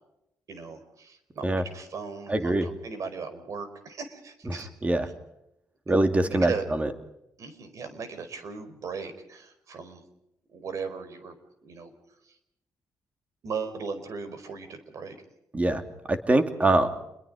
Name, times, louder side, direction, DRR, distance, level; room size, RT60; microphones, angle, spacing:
voice 1, 0.5-4.7 5.9-6.6 7.4-10.0 10.5-11.4 11.6-11.9 12.3-12.4 13.4-15.2, right 5 dB, 60° right, 10 dB, 4.8 m, -38 dB
voice 2, 2.3-2.7 4.5-5.1 5.9-6.9 15.5-15.8 16.1-16.9, right 2 dB, 20° right, 7 dB, 2.8 m, -24 dB
29.5 x 22.0 x 5.1 m, 0.83 s
cardioid pair, 105°, 6 cm